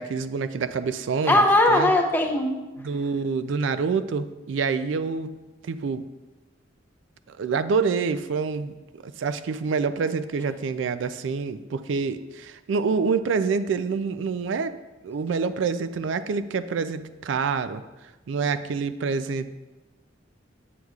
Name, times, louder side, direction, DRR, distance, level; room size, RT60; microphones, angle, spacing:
voice 1, 0.0-1.9 2.8-5.3 5.6-6.0 7.3-14.7 15.0-17.8 18.3-19.5, right 5 dB, 80° right, 12 dB, 0.4 m, -27 dB
voice 2, 1.3-2.6, left 1 dB, 10° left, 2 dB, 0.6 m, -19 dB
8.0 x 7.6 x 2.4 m, 1.1 s
head